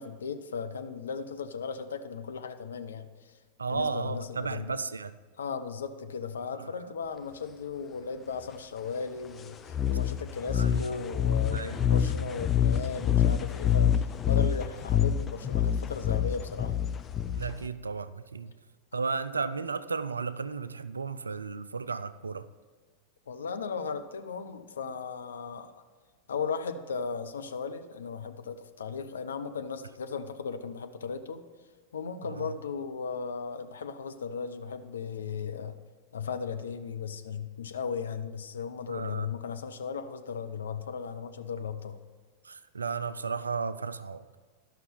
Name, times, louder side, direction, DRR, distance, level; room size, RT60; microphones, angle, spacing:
voice 1, 0.0-3.3 3.7-4.6 5.4-16.7 23.3-25.7 26.3-31.4 31.9-35.8 36.1-42.0, left 5 dB, 70° left, 8 dB, 0.6 m, -36 dB
voice 2, 3.6-5.2 6.5-6.7 10.6-10.8 11.5-11.8 17.3-18.5 18.9-22.5 32.3-32.5 38.9-39.3 42.4-44.2, right 5 dB, 75° right, 15 dB, 0.4 m, -34 dB
sound 1, 9.7-17.7, left 9 dB, 25° left, 0.5 m, -26 dB
12.5 x 5.7 x 5.3 m, 1.5 s
figure-of-eight pair, 90°, 0 cm